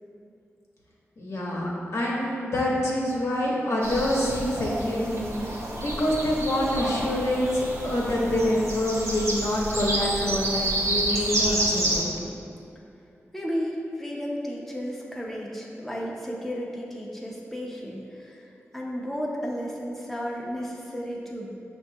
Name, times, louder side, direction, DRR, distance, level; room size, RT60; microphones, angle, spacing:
voice 1, 1.2-12.1, left 1 dB, 70° left, -4 dB, 0.7 m, -26 dB
sound 1, 3.8-12.0, right 1 dB, 65° right, 0.6 m, -29 dB
voice 2, 13.3-21.5, equal, 5° left, -4 dB, 0.5 m, -33 dB
5.7 x 2.3 x 2.7 m, 2.7 s
cardioid pair, 55°, 5 cm